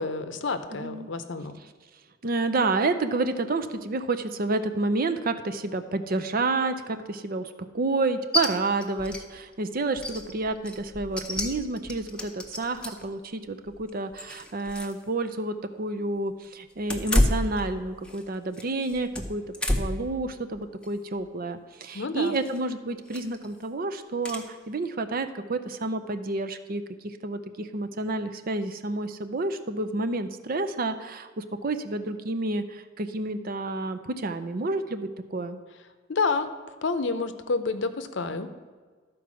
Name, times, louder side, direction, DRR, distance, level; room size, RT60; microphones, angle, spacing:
voice 1, 0.0-1.6 21.9-22.4 36.1-36.5 36.8-38.5, left 4 dB, 65° left, 10 dB, 0.7 m, -29 dB
voice 2, 0.8-1.1 2.2-35.6, right 3 dB, 45° right, 9 dB, 0.6 m, -29 dB
sound 1, 8.3-8.5 8.8-9.2 9.5-9.6 10.0-13.1 13.7-15.0 15.3-15.4 16.8-18.2 18.5-20.1 20.5-20.9 22.2-22.6 23.1-23.5 24.2-24.4, left 1 dB, 5° left, 0.7 m, -29 dB
12.5 x 4.6 x 6.2 m, 1.4 s
head